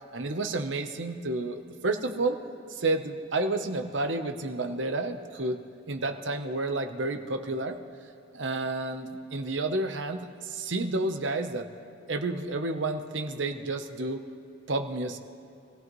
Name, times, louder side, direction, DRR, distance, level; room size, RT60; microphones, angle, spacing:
voice 1, 0.1-2.4 2.7-5.6 5.9-7.8 8.3-11.7 12.1-14.2 14.7-15.2, right 2 dB, 75° right, 6 dB, 0.9 m, -30 dB
26.0 x 16.5 x 3.1 m, 2.6 s
head